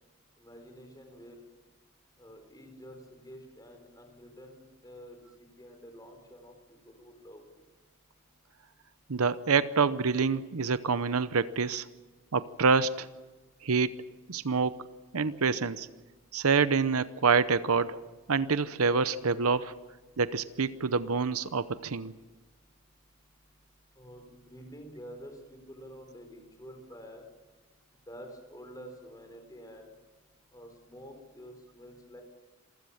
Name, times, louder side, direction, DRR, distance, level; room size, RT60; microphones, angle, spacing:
voice 1, 0.4-1.4 2.2-6.5 6.9-7.6 24.0-27.3 28.1-29.9 30.5-32.2, equal, 15° left, 4 dB, 4.2 m, -49 dB
voice 2, 9.1-11.9 12.3-13.1 13.6-14.0 14.3-14.8 15.1-15.9 16.3-18.0 18.3-19.7 20.2-22.1, right 5 dB, 80° right, 14 dB, 0.8 m, -27 dB
26.5 x 15.5 x 7.2 m, 1.3 s
head